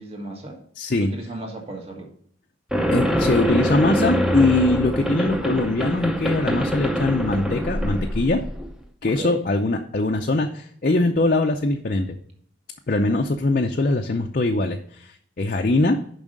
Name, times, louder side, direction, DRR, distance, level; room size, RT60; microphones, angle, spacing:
voice 1, 0.0-0.6 1.0-2.1 9.0-9.4, right 2 dB, 30° right, 1 dB, 1.5 m, -35 dB
voice 2, 0.8-1.1 2.9-8.4 9.0-12.2 12.9-16.0, left 2 dB, 45° left, 3 dB, 0.5 m, -22 dB
sound 1, 2.7-8.7, equal, 5° right, 0.7 m, -24 dB
7.2 x 5.5 x 5.2 m, 0.63 s
head